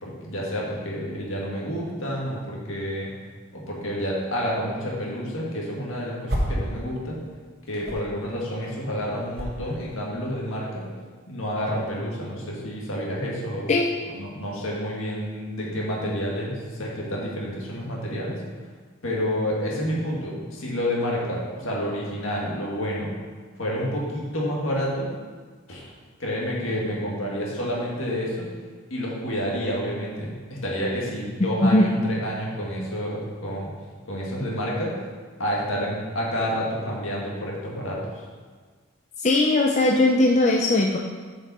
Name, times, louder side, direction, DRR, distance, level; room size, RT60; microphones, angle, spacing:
voice 1, 0.0-3.1 3.5-7.2 7.7-10.9 11.3-13.7 14.1-18.4 19.0-23.1 23.6-25.1 25.7-25.8 26.2-28.5 28.9-33.7 34.1-34.9 35.4-38.0, equal, 70° left, -4 dB, 1.9 m, -29 dB
sound 1, 5.1-6.8 7.0-10.7, equal, 50° right, 1.3 m, -32 dB
voice 2, 31.6-32.0 39.2-41.0, left 2 dB, 35° left, 0 dB, 0.4 m, -19 dB
8.7 x 5.3 x 4.2 m, 1.5 s
head